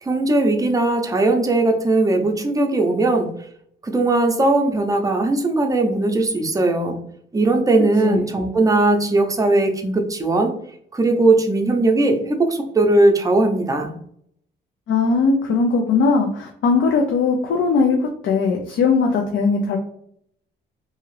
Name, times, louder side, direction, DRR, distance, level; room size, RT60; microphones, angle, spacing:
voice 1, 0.0-3.3 3.8-7.0 7.3-10.5 10.9-13.9, right 2 dB, 15° right, 3 dB, 0.6 m, -19 dB
voice 2, 14.9-19.8, left 4 dB, 70° left, 1 dB, 0.5 m, -19 dB
2.7 x 2.4 x 3.1 m, 0.68 s
cardioid pair, 90°, 20 cm